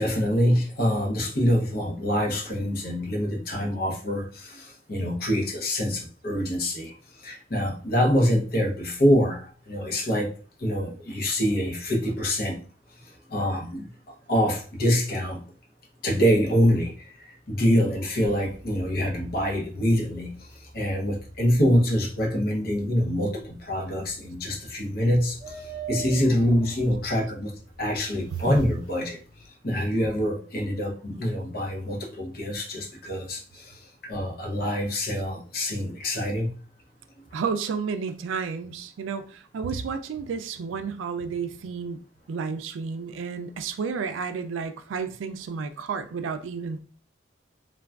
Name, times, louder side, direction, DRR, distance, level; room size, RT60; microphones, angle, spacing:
voice 1, 0.0-12.6 13.3-13.9 14.3-15.4 16.0-27.5 27.8-29.2 29.6-36.5, equal, 50° left, 0 dB, 0.7 m, -25 dB
sound 1, 18.2-29.5, right 2 dB, 20° right, 0.8 m, -43 dB
voice 2, 37.3-42.0 42.3-46.8, right 5 dB, 80° right, 9 dB, 0.3 m, -31 dB
3.3 x 2.2 x 2.3 m, 0.40 s
head